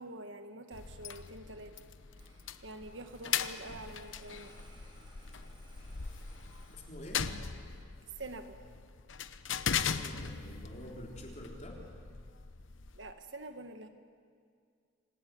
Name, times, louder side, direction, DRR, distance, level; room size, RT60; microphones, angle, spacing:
voice 1, 0.0-1.7 2.6-4.6 8.2-8.6 12.9-13.9, right 2 dB, 75° right, 7 dB, 1.6 m, -46 dB
sound 1, 0.7-13.1, left 7 dB, 85° left, 0.9 m, -39 dB
Engine starting, 2.1-7.5, right 1 dB, 25° right, 5.2 m, -61 dB
voice 2, 6.7-7.3 9.7-11.8, left 1 dB, 35° left, -1 dB, 4.0 m, -47 dB
26.0 x 18.0 x 9.3 m, 2.1 s
head